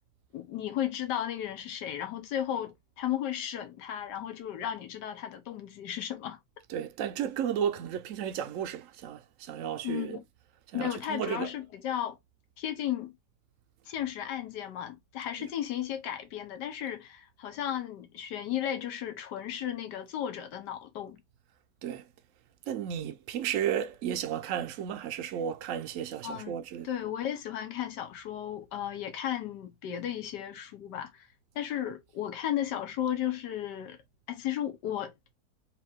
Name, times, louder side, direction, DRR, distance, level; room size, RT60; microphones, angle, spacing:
voice 1, 0.3-6.4 9.8-10.2 10.7-12.2 12.6-13.1 13.9-21.2 26.2-26.6 26.8-31.3 31.5-34.0 34.3-35.1, left 11 dB, 80° left, 1.5 m, -34 dB
voice 2, 6.7-10.2 10.7-11.5 21.8-22.0 22.7-26.9, right 9 dB, 65° right, 0.8 m, -33 dB
3.4 x 3.0 x 3.5 m
omnidirectional pair, 1.8 m